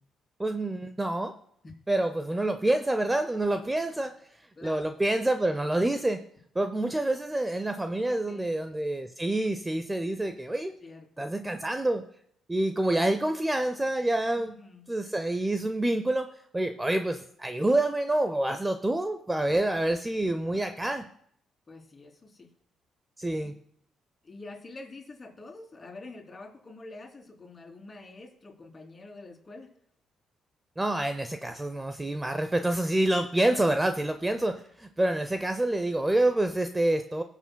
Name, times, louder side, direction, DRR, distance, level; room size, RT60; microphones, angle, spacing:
voice 1, 0.4-1.3 1.9-4.1 4.6-6.2 6.6-10.7 11.2-12.0 12.5-14.6 14.9-21.1 23.2-23.5 30.8-37.2, right 1 dB, 15° right, 8 dB, 0.6 m, -27 dB
voice 2, 4.5-4.9 8.0-8.5 10.8-11.3 14.3-14.9 21.7-22.5 23.4-23.5 24.2-29.7, left 2 dB, 30° left, -1 dB, 3.0 m, -46 dB
18.0 x 7.1 x 2.3 m, 0.66 s
cardioid pair, 90°, 0 cm